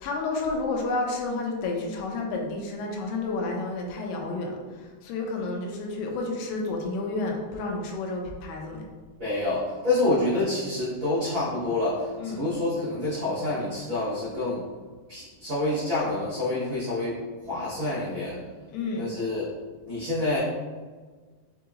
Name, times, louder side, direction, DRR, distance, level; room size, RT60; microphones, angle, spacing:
voice 1, 0.0-8.8 12.2-12.4 18.7-19.0, left 3 dB, 80° left, 1 dB, 2.6 m, -30 dB
voice 2, 9.2-14.7 15.1-18.4 19.0-19.5 19.9-20.4, left 2 dB, 80° right, -13 dB, 1.0 m, -27 dB
6.1 x 2.9 x 2.4 m, 1.4 s
omnidirectional pair, 4.7 m